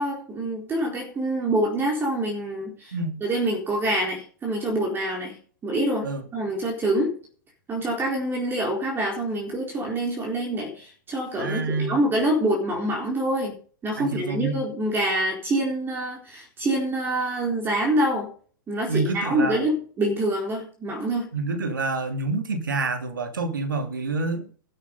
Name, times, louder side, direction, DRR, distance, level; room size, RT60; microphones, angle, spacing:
voice 1, 0.0-3.0 3.2-5.4 5.6-7.1 7.7-13.5 13.8-18.3 18.7-21.3, right 1 dB, 20° right, 1 dB, 4.2 m, -26 dB
voice 2, 11.4-12.0 14.0-14.5 18.9-19.6 21.3-24.5, right 3 dB, 80° right, 7 dB, 2.6 m, -27 dB
12.0 x 9.8 x 5.4 m, 0.43 s
hypercardioid pair, 105°, 11 cm